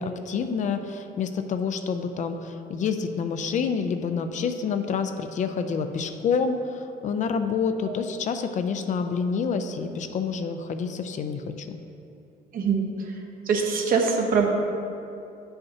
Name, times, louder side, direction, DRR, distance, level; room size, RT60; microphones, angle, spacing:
voice 1, 0.0-11.8, left 5 dB, 45° left, 7 dB, 0.4 m, -28 dB
voice 2, 13.5-14.5, right 5 dB, 55° right, 1 dB, 1.0 m, -23 dB
9.2 x 5.6 x 2.8 m, 2.7 s
cardioid pair, 110°, 17 cm